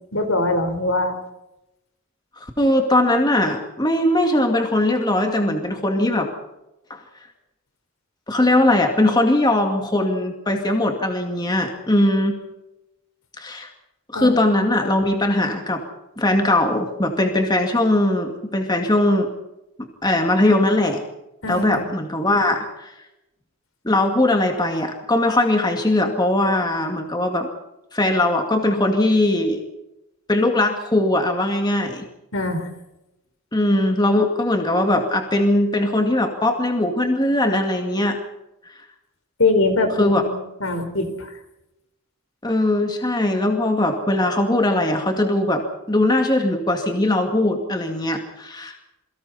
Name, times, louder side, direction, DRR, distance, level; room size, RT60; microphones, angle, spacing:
voice 1, 0.1-1.2 14.1-14.4 14.8-14.9 21.4-21.9 32.3-32.7 39.4-41.3, left 2 dB, 65° left, 7 dB, 4.5 m, -22 dB
voice 2, 2.4-6.3 6.9-7.0 8.3-12.4 13.4-13.7 14.1-15.8 16.2-19.3 20.0-21.0 21.5-22.9 23.8-27.5 27.9-29.6 30.3-32.0 33.5-38.2 40.0-40.2 42.4-48.8, left 1 dB, 20° left, 3 dB, 2.2 m, -20 dB
28.0 x 23.5 x 4.3 m, 0.91 s
head